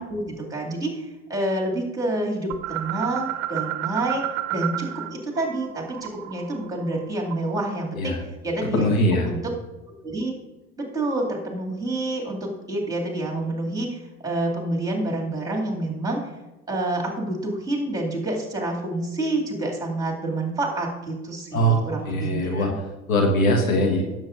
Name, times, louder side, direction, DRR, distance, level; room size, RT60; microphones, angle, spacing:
voice 1, 0.0-4.2 4.5-8.1 8.4-8.9 9.2-9.4 10.0-10.3 10.8-14.0 14.2-16.2 16.7-22.7, right 2 dB, 10° right, -1 dB, 2.4 m, -28 dB
sound 1, 2.5-5.1 5.4-7.7, right 13 dB, 45° right, 0.7 m, -31 dB
voice 2, 8.7-9.3 21.5-21.8 22.1-22.7 23.1-24.0, equal, 75° left, 2 dB, 1.5 m, -21 dB
16.0 x 7.4 x 2.6 m, 1.1 s
figure-of-eight pair, 75°, 42 cm